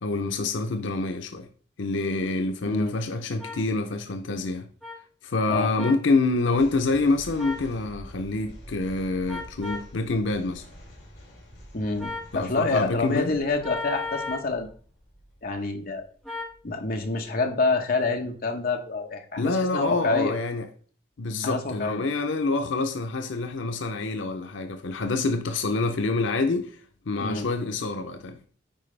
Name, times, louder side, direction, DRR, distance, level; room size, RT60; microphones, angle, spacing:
voice 1, 0.0-1.5 1.8-4.7 5.2-10.6 12.3-13.4 19.4-20.7 21.2-26.8 27.1-28.4, left 3 dB, 90° left, 0.7 m, -26 dB
sound 1, 3.4-3.6 4.8-4.9 5.8-6.0 7.4-7.7 9.3-9.9 12.0-12.3 13.6-14.5 16.2-16.5, left 3 dB, ahead, 1.7 m, -34 dB
sound 2, 6.5-17.8, equal, 70° left, 3.8 m, -47 dB
voice 2, 11.7-14.7 15.4-16.0 16.6-20.3 21.4-22.0 27.2-27.7, left 3 dB, 50° left, 1.1 m, -27 dB
9.1 x 4.7 x 3.3 m
head